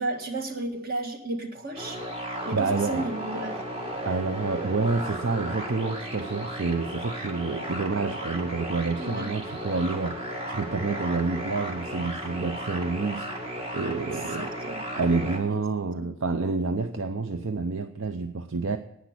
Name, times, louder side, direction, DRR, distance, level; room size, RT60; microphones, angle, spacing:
voice 1, 0.0-2.0 2.5-3.6 9.0-9.3 13.8-14.9 15.5-15.6 16.0-16.1, right 2 dB, 45° right, 5 dB, 1.7 m, -33 dB
sound 1, 1.7-15.4, equal, 25° right, 2.0 m, -35 dB
voice 2, 2.5-3.1 4.0-14.5 14.9-18.8, right 4 dB, 65° right, 8 dB, 0.6 m, -28 dB
10.5 x 9.4 x 8.0 m, 0.83 s
head